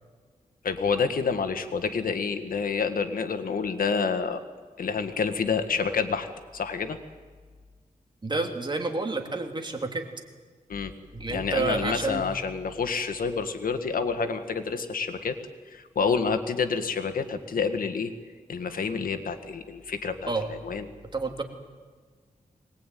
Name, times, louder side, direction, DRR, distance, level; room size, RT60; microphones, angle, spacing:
voice 1, 0.6-4.4 4.8-7.0 10.7-10.9 11.3-15.4 15.7-18.1 18.5-20.9, left 5 dB, 80° left, 9 dB, 1.7 m, -28 dB
voice 2, 8.2-10.1 11.1-12.2 20.3-20.5 21.1-21.4, right 3 dB, 35° right, 3 dB, 3.0 m, -29 dB
22.5 x 20.0 x 9.3 m, 1.5 s
wide cardioid pair, 95°, 14 cm